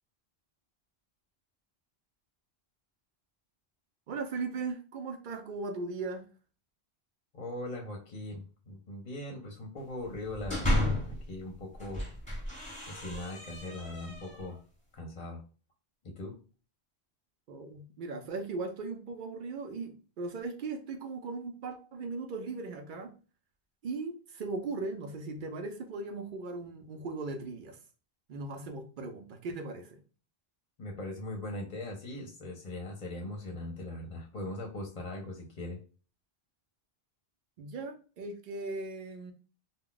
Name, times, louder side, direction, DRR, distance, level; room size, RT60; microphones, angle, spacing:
voice 1, 4.1-6.3 17.5-23.1 23.8-27.8 28.3-30.0 37.6-39.3, right 3 dB, 60° right, 6 dB, 0.7 m, -38 dB
voice 2, 7.3-12.0 12.5-12.6 12.9-14.6 14.9-15.4 16.0-16.3 30.8-35.8, left 1 dB, 45° left, 1 dB, 0.6 m, -40 dB
sound 1, 10.1-11.2 11.7-14.6, left 1 dB, 10° left, 0.9 m, -33 dB
2.3 x 2.1 x 3.7 m, 0.36 s
omnidirectional pair, 1.1 m